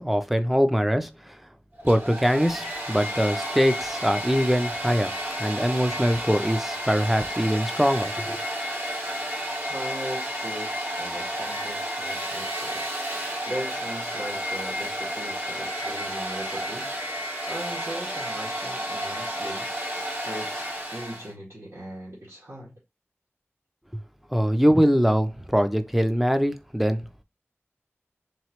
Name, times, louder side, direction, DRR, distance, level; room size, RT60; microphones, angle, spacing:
voice 1, 0.0-1.4 1.8-5.1 5.4-8.4 24.3-27.1, equal, 5° right, 0.5 m, -23 dB
Domestic sounds home sounds, 1.8-21.3, equal, 45° right, 1.6 m, -31 dB
voice 2, 9.7-12.9 13.5-16.9 17.5-19.7 20.1-22.8, right 1 dB, 75° right, 1.8 m, -38 dB
3.9 x 3.1 x 3.0 m
wide cardioid pair, 55°, 5 cm